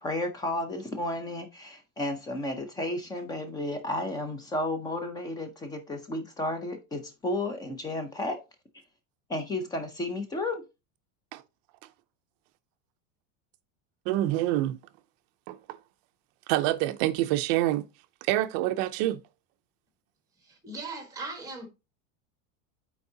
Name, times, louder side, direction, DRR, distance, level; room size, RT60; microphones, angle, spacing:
voice 1, 0.0-8.4 9.3-10.6, left 1 dB, 10° left, 0.5 m, -32 dB
voice 2, 14.1-14.8 15.5-15.8 16.5-17.9 18.3-19.2, right 15 dB, 45° right, 0.5 m, -26 dB
voice 3, 20.5-21.7, right 3 dB, 10° right, 1.3 m, -38 dB
8.1 x 4.6 x 2.7 m
supercardioid pair, 165°, 43 cm